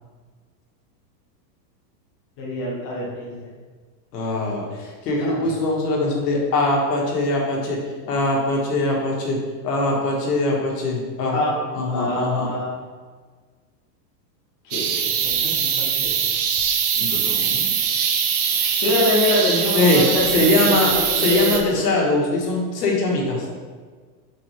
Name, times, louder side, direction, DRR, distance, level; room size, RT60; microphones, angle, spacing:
voice 1, 2.4-3.5 5.2-5.5 11.3-11.5 11.9-12.7 14.6-16.3 18.6-22.1, left 2 dB, 20° left, -5 dB, 0.4 m, -25 dB
voice 2, 4.1-9.4 9.6-11.4 11.7-12.5 17.0-17.7 19.7-20.0 20.3-20.9 21.2-23.5, left 2 dB, 70° left, -1 dB, 1.8 m, -22 dB
sound 1, 14.7-21.6, right 7 dB, 60° right, 0.9 m, -22 dB
6.1 x 4.5 x 3.5 m, 1.5 s
supercardioid pair, 175°, 50 cm